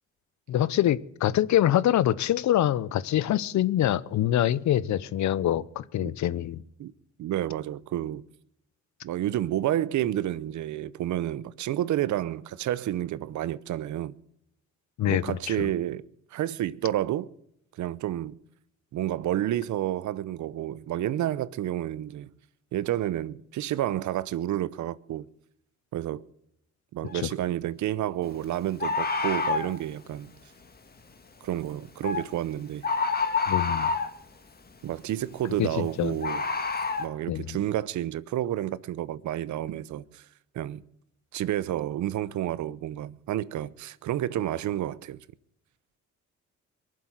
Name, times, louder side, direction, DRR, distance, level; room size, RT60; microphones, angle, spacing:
voice 1, 0.5-6.6 15.0-15.7 33.5-33.9 35.6-36.2 37.3-37.6, left 12 dB, 70° left, 0.8 m, -25 dB
voice 2, 7.2-8.3 9.0-14.2 15.1-16.0 16.3-17.3 17.8-18.4 18.9-22.3 22.7-25.3 25.9-26.2 26.9-30.3 31.4-32.8 34.8-36.4 37.0-40.2 40.5-40.8 41.3-45.2, right 12 dB, 75° right, 0.8 m, -30 dB
Bird, 27.1-27.2 28.8-29.7 32.0-32.3 32.8-34.2 36.2-37.1, left 4 dB, 30° left, 1.9 m, -27 dB
23.0 x 7.7 x 7.9 m
cardioid pair, 90°, 30 cm